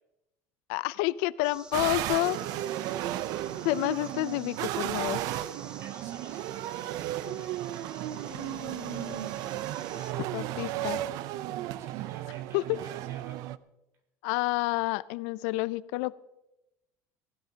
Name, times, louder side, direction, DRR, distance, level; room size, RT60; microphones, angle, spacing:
voice 1, 0.7-2.4 3.6-5.2 8.3-9.3 10.0-11.0 12.5-12.8 14.2-16.1, left 19 dB, 85° left, 18 dB, 0.4 m, -30 dB
sound 1, 1.4-10.1, right 2 dB, 15° right, 1.0 m, -51 dB
sound 2, 1.7-13.6, right 14 dB, 65° right, 0.5 m, -34 dB
voice 2, 3.5-4.3 5.8-7.6 11.8-13.4, right 4 dB, 45° right, 4 dB, 4.1 m, -54 dB
23.0 x 16.0 x 2.8 m, 0.92 s
cardioid pair, 145°, 7 cm